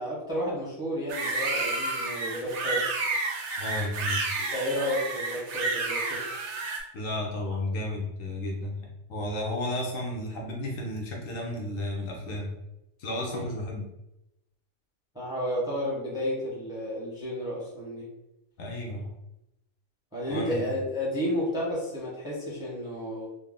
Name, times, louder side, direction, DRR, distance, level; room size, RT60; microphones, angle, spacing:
voice 1, 0.0-2.9 4.4-6.2 13.2-13.5 15.1-18.1 20.1-23.3, equal, 5° right, -6 dB, 0.8 m, -32 dB
sound 1, 1.1-6.8, right 3 dB, 60° right, 0.8 m, -30 dB
voice 2, 3.6-4.2 6.9-12.5 13.0-13.8 18.6-19.1 20.3-20.6, left 1 dB, 70° left, -1 dB, 1.1 m, -33 dB
3.9 x 2.0 x 3.6 m, 0.88 s
omnidirectional pair, 1.5 m